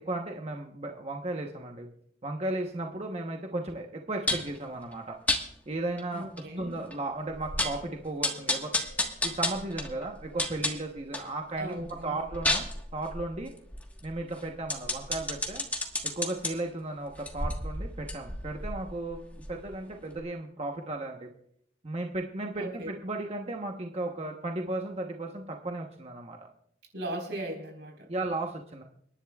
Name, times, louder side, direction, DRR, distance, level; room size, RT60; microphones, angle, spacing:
voice 1, 0.0-1.9 2.2-5.2 5.7-6.3 6.6-8.7 9.2-11.8 12.0-12.6 12.9-13.5 14.0-15.7 16.2-21.3 21.8-26.4 28.1-28.8, right 2 dB, 35° right, 2 dB, 1.0 m, -35 dB
sound 1, 4.3-4.6 5.3-5.4 6.0-6.1 6.4-6.5 6.9-7.0 7.3-7.8 8.2-11.3 11.7-16.5 17.1-19.8 20.1-20.2, left 2 dB, 10° left, 1.4 m, -32 dB
voice 2, 6.1-6.8 11.6-12.2 22.6-22.9 26.9-28.1, right 1 dB, 85° right, 2 dB, 4.3 m, -37 dB
30.0 x 10.5 x 2.4 m, 0.68 s
head